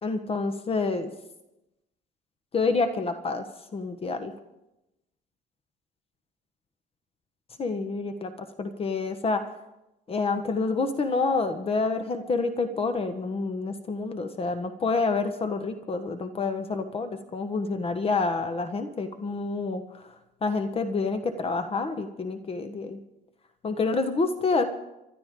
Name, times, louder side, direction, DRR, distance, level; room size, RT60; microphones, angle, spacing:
voice 1, 0.0-1.1 2.5-3.4 3.7-4.3 7.6-8.3 8.6-9.4 10.1-20.0 20.4-23.0 23.6-24.6, left 3 dB, 35° left, 8 dB, 1.2 m, -28 dB
29.5 x 12.0 x 3.8 m, 0.94 s
cardioid pair, 110°, 17 cm